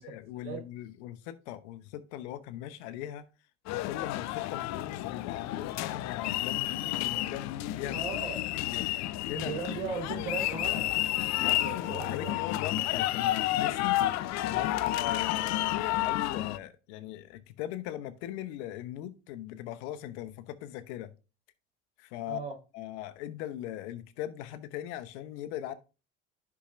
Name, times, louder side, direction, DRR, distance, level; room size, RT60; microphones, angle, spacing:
voice 1, 0.0-3.2 3.7-8.0 8.5-9.7 11.4-14.0 14.5-21.1 22.0-22.4 22.7-25.7, left 12 dB, 70° left, 1.0 m, -40 dB
sound 1, 3.7-16.6, left 15 dB, 50° left, 0.6 m, -31 dB
voice 2, 7.9-8.4 9.3-11.0 11.4-12.4 22.3-22.5, right 5 dB, 85° right, 3.9 m, -38 dB
11.0 x 6.0 x 2.5 m
hypercardioid pair, 70°, 34 cm